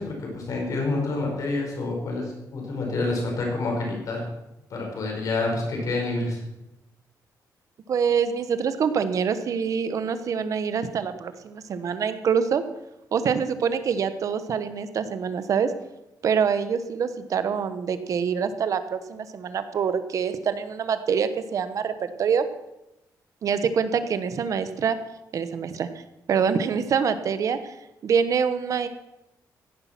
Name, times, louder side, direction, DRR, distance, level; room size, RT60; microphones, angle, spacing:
voice 1, 0.0-4.2 4.7-6.4, left 2 dB, 55° left, 0 dB, 5.1 m, -28 dB
voice 2, 7.9-12.6 13.1-15.7 16.2-21.9 22.2-22.4 23.4-25.0 25.3-25.9 26.3-27.7 28.0-28.9, right 6 dB, 50° right, 11 dB, 1.1 m, -25 dB
16.0 x 10.5 x 6.0 m, 0.93 s
wide cardioid pair, 170°, 7 cm